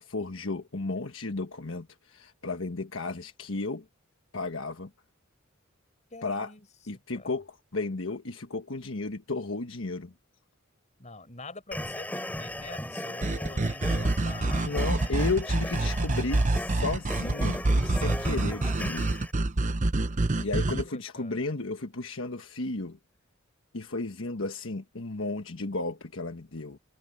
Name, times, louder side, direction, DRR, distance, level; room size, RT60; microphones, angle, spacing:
voice 1, 0.0-3.8 4.3-4.9 6.2-6.5 6.9-10.1 14.6-19.1 20.4-23.0 23.7-26.8, left 3 dB, 70° left, 1.3 m, -33 dB
voice 2, 6.1-6.7 7.1-7.3 11.0-15.2 20.2-21.3, left 3 dB, 35° left, 5.7 m, -45 dB
sound 1, 11.7-19.3, left 1 dB, 10° left, 3.7 m, -37 dB
sound 2, 13.2-20.8, right 2 dB, 35° right, 0.8 m, -27 dB
head